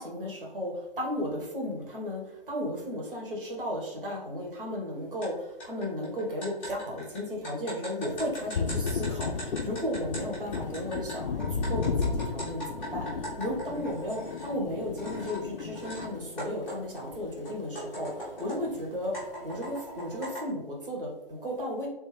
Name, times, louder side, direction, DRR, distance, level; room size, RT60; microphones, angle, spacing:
voice 1, 0.0-13.1 13.4-19.1 19.4-21.9, left 1 dB, 65° right, -2 dB, 1.4 m, -34 dB
sound 1, 5.2-5.3 5.6-14.5 15.0-16.1 16.4-18.7 19.1-20.5, equal, 5° left, 0.6 m, -40 dB
Thunder, 8.1-17.9 18.2-19.3, left 5 dB, 70° left, 0.4 m, -34 dB
3.5 x 2.7 x 3.1 m, 0.95 s
figure-of-eight pair, 140°, 30 cm